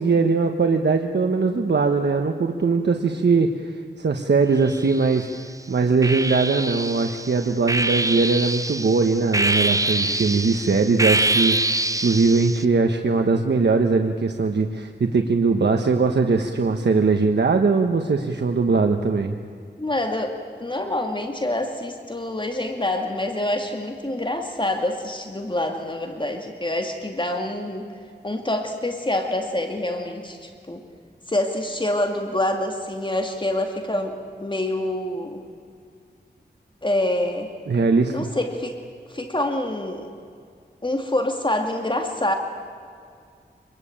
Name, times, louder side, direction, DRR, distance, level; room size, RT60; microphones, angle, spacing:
voice 1, 0.0-5.3 5.7-19.4 37.7-38.3, right 4 dB, 75° right, 5 dB, 1.3 m, -21 dB
sound 1, 4.6-5.4 6.0-12.6, right 2 dB, 20° right, 0.9 m, -25 dB
voice 2, 19.8-27.9 28.2-30.8 31.3-35.4 36.8-37.5 38.1-38.8 39.1-40.1 40.8-42.3, left 1 dB, 25° left, 4 dB, 2.3 m, -26 dB
26.0 x 22.0 x 8.8 m, 2.2 s
wide cardioid pair, 70°, 18 cm